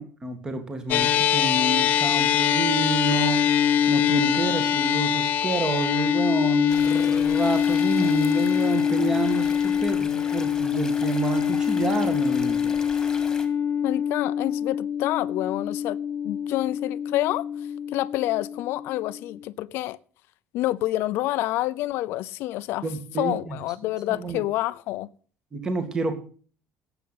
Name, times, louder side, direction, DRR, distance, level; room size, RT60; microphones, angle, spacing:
voice 1, 0.0-3.4 3.9-12.8 22.8-23.5 24.1-24.4 25.5-26.2, right 3 dB, 15° right, 1.9 m, -29 dB
sound 1, 0.9-19.4, left 8 dB, 45° left, 1.3 m, -24 dB
sound 2, 6.7-13.5, left 3 dB, 10° left, 2.2 m, -40 dB
voice 2, 13.8-16.0 16.2-17.5 17.9-20.0 20.5-22.8 23.2-25.1, left 16 dB, 60° left, 0.6 m, -28 dB
17.5 x 8.1 x 5.7 m
cardioid pair, 165°, 4 cm